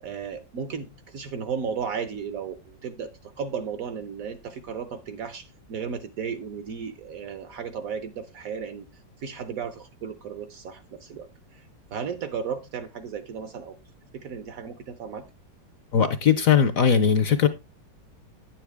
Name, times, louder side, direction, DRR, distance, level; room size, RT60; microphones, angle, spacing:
voice 1, 0.0-8.9 9.2-11.6 11.9-13.8 14.1-15.3, right 6 dB, 65° right, 0.9 m, -34 dB
voice 2, 15.9-17.5, left 7 dB, 60° left, 0.9 m, -19 dB
9.9 x 7.4 x 3.3 m
omnidirectional pair, 2.0 m